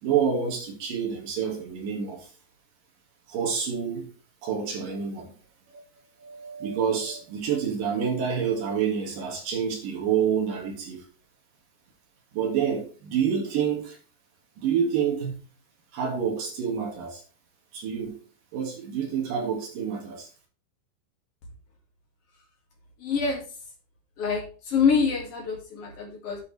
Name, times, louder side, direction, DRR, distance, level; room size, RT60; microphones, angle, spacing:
voice 1, 0.0-2.3 3.3-4.1 4.4-5.3 5.7-5.8 6.2-11.0 12.3-14.0 14.6-15.3 15.9-17.2 17.7-18.2 18.5-20.3, right 7 dB, 60° right, 3.2 m, -28 dB
voice 2, 23.0-23.4 24.2-24.4 24.7-26.4, left 5 dB, 45° left, 2.4 m, -25 dB
9.9 x 7.8 x 3.3 m
omnidirectional pair, 5.0 m